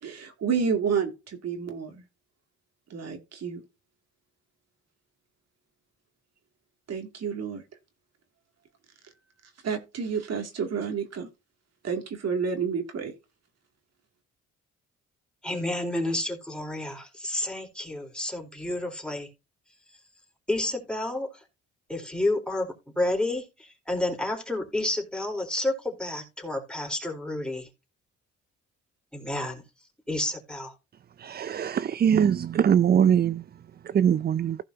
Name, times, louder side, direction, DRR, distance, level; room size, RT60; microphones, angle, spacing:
voice 1, 0.0-2.0 2.9-3.6 6.9-7.6 9.6-11.3 11.8-13.1, right 6 dB, 60° right, 2.6 m, -30 dB
voice 2, 15.4-19.3 20.5-21.4 21.9-27.7 29.1-29.6 30.1-30.7, left 1 dB, 5° left, 4.0 m, -30 dB
voice 3, 31.2-34.6, right 8 dB, 35° right, 0.4 m, -23 dB
15.5 x 5.3 x 2.8 m
cardioid pair, 90°, 30 cm